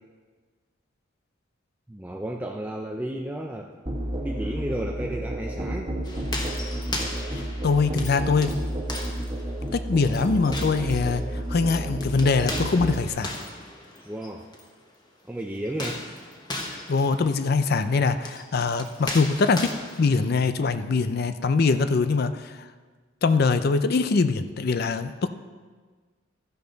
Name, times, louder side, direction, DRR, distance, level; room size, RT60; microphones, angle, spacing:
voice 1, 1.9-3.7 4.2-5.9 14.0-14.4 15.3-16.0, right 1 dB, 10° right, 1 dB, 0.5 m, -32 dB
Musical instrument, 3.9-13.1, right 1 dB, 25° right, 1.4 m, -31 dB
sound 1, 6.0-14.7 15.7-20.3, left 1 dB, 20° left, 1.2 m, -37 dB
voice 2, 7.3-8.5 9.7-13.3 16.9-19.7 20.0-22.7 23.2-25.3, left 4 dB, 50° left, 11 dB, 0.4 m, -23 dB
13.0 x 10.5 x 3.9 m, 1.4 s
head